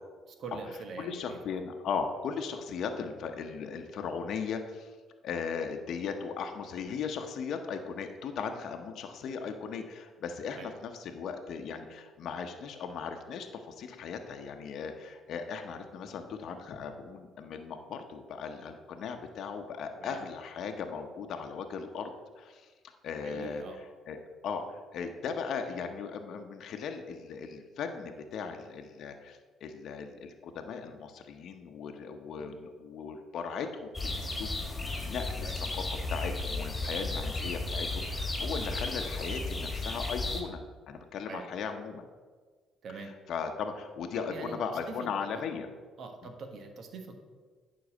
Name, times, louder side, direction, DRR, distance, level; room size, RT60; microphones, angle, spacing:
voice 1, 0.3-1.6 10.5-10.7 19.9-20.2 23.2-23.8 32.4-32.5 35.4-35.6 41.3-41.4 42.8-43.1 44.2-45.4 46.0-47.2, right 4 dB, 60° right, 5 dB, 1.2 m, -44 dB
voice 2, 1.0-5.0 5.2-22.1 22.4-22.7 23.0-23.6 24.1-34.5 35.1-35.8 36.1-40.6 40.9-42.1 43.3-45.7, left 6 dB, 65° left, 5 dB, 0.8 m, -37 dB
sound 1, 33.9-40.4, left 2 dB, 20° left, 1.8 m, -34 dB
9.4 x 4.0 x 6.4 m, 1.4 s
supercardioid pair, 75°, 0 cm